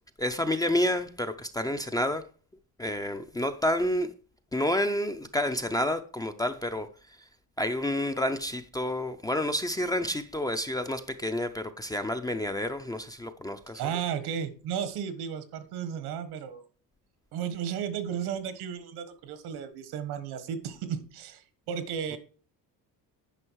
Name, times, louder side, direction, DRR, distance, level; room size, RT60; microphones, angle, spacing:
voice 1, 0.2-2.2 2.8-4.1 4.5-7.2 7.6-13.8, left 1 dB, 10° left, 0.4 m, -29 dB
voice 2, 13.7-16.6 17.3-22.2, right 8 dB, 75° right, 1.4 m, -34 dB
9.9 x 5.3 x 4.6 m
cardioid pair, 120°, 39 cm